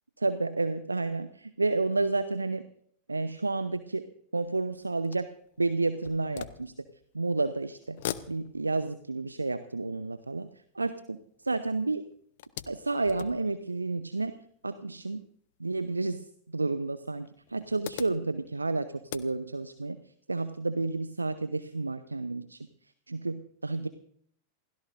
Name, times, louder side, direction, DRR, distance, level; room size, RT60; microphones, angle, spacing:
voice 1, 0.2-2.6 3.1-4.0 4.3-5.3 5.6-6.7 7.1-8.0 8.3-10.5 10.8-12.0 12.7-14.3 14.6-15.2 15.6-20.0 20.3-22.7 23.1-23.9, right 3 dB, 80° right, 12 dB, 0.7 m, -30 dB
sound 1, 4.4-7.4 7.7-11.6 12.0-14.6 15.5-15.6 16.0-16.1 17.2-19.8, left 12 dB, 55° left, 0.8 m, -44 dB
28.0 x 17.0 x 2.6 m, 0.65 s
figure-of-eight pair, 90°, 0 cm